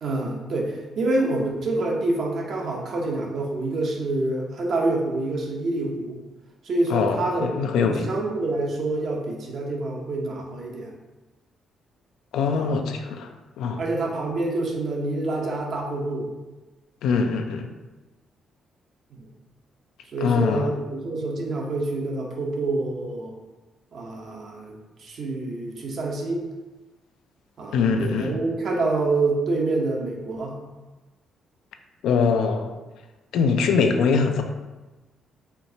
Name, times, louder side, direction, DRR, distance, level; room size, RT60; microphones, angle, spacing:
voice 1, 0.0-6.2 6.7-10.9 12.5-12.7 13.8-16.3 19.1-19.3 20.1-23.3 23.9-26.4 27.6-30.6, right 2 dB, 60° right, -1 dB, 0.7 m, -27 dB
voice 2, 6.9-8.1 12.3-13.3 13.6-13.8 17.0-17.7 20.2-20.8 27.7-28.4 32.0-32.7 33.3-34.4, left 5 dB, 80° left, 6 dB, 0.3 m, -23 dB
4.3 x 2.0 x 2.7 m, 1.2 s
supercardioid pair, 70°, 0 cm